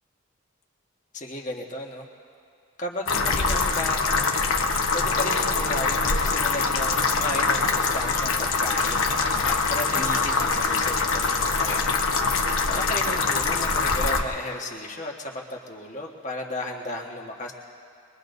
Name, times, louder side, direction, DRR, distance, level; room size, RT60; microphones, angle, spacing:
voice 1, 1.1-2.1 2.8-4.3 4.9-11.9 12.7-17.5, left 1 dB, 35° left, 0 dB, 1.4 m, -34 dB
sound 1, 3.1-14.2, left 4 dB, 90° left, 1.1 m, -24 dB
sound 2, 8.7-14.2, left 2 dB, 75° left, 1.6 m, -39 dB
23.5 x 22.0 x 2.7 m, 2.5 s
head